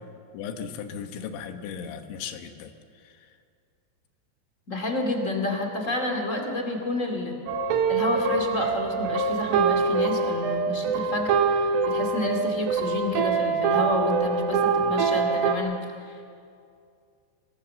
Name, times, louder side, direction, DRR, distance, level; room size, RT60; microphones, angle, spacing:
voice 1, 0.3-2.7 3.0-3.3 14.8-14.9, left 7 dB, 75° left, 6 dB, 3.4 m, -37 dB
voice 2, 4.7-7.4 7.9-15.7, left 1 dB, 35° left, 2 dB, 1.2 m, -29 dB
sound 1, 7.5-15.6, right 5 dB, 80° right, 3.9 m, -24 dB
26.0 x 19.0 x 7.6 m, 2.4 s
omnidirectional pair, 5.6 m